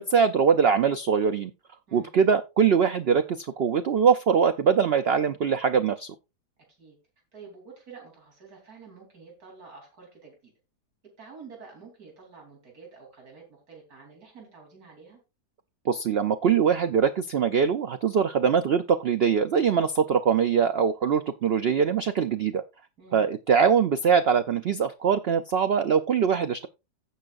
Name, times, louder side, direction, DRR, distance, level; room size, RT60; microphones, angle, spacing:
voice 1, 0.0-1.5 1.9-6.1 15.9-22.6 23.1-26.7, right 6 dB, 85° right, 11 dB, 0.5 m, -22 dB
voice 2, 7.3-10.5 11.2-15.2 23.0-23.3, right 5 dB, 65° right, 0 dB, 3.7 m, -48 dB
16.0 x 5.7 x 2.5 m, 0.26 s
omnidirectional pair, 1.7 m